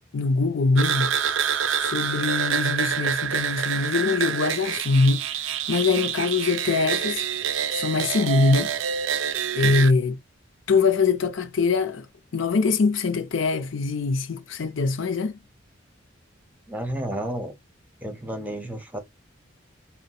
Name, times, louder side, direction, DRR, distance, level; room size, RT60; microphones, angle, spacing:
voice 1, 0.1-1.2 1.8-7.2 7.7-8.7 9.5-10.2 10.7-12.1 12.3-15.4, left 4 dB, 70° left, 0.6 m, -23 dB
sound 1, 0.8-9.9, right 8 dB, 70° right, 0.4 m, -27 dB
voice 2, 16.7-17.5 18.0-19.0, right 1 dB, 10° right, 0.8 m, -31 dB
4.0 x 2.1 x 2.3 m
head